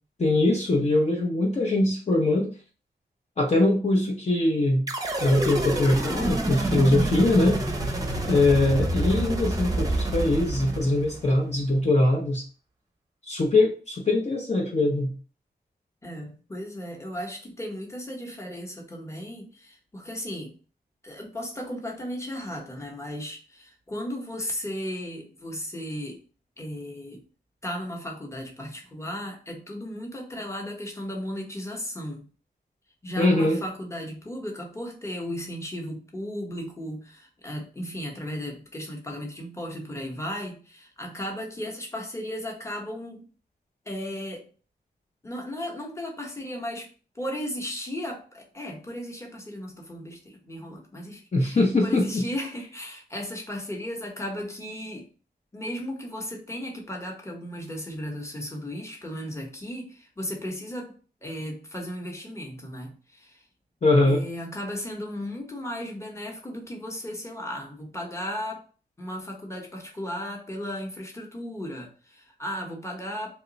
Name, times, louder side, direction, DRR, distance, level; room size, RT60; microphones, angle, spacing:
voice 1, 0.2-2.5 3.4-4.8 5.2-7.6 8.3-12.4 13.2-15.1 33.2-33.6 51.3-52.3 63.8-64.2, left 2 dB, 40° left, -1 dB, 0.6 m, -22 dB
sound 1, 4.9-11.3, right 1 dB, 20° right, 0.6 m, -28 dB
voice 2, 7.9-8.4 16.0-20.5 21.0-26.2 26.6-27.2 27.6-32.2 33.0-43.3 43.9-44.5 45.2-46.9 47.1-55.1 55.5-63.4 64.0-68.6 69.0-73.3, equal, 15° left, 1 dB, 0.9 m, -35 dB
2.9 x 2.2 x 3.9 m, 0.37 s
wide cardioid pair, 100°, 17 cm